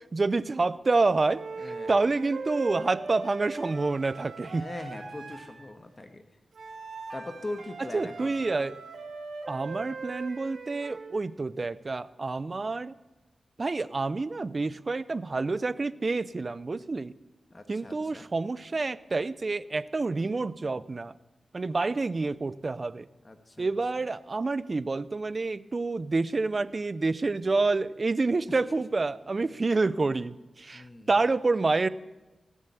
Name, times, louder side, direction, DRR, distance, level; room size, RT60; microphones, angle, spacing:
voice 1, 0.0-4.7 7.9-8.8 9.5-12.9 13.6-17.1 17.7-21.1 21.5-23.1 23.6-31.9, right 3 dB, 50° right, 17 dB, 0.5 m, -28 dB
sound 1, 1.3-5.6 6.5-11.2, right 4 dB, 85° right, 2.0 m, -40 dB
voice 2, 1.6-1.9 4.5-6.2 7.1-8.3 17.5-18.2 23.2-23.7 28.5-28.8 30.7-31.1, left 2 dB, 40° left, 6 dB, 1.4 m, -41 dB
17.5 x 7.4 x 8.2 m, 1.1 s
cardioid pair, 45°, 0 cm